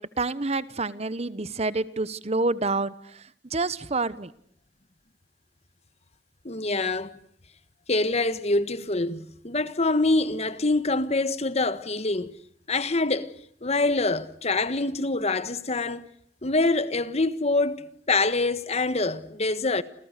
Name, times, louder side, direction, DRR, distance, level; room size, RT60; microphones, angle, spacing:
voice 1, 0.2-2.9 3.5-4.3, right 3 dB, 35° right, 1.1 m, -27 dB
voice 2, 6.4-7.1 7.9-12.3 12.7-13.3 13.6-16.0 16.4-19.8, left 2 dB, 40° left, 1.4 m, -25 dB
29.5 x 27.5 x 6.7 m
head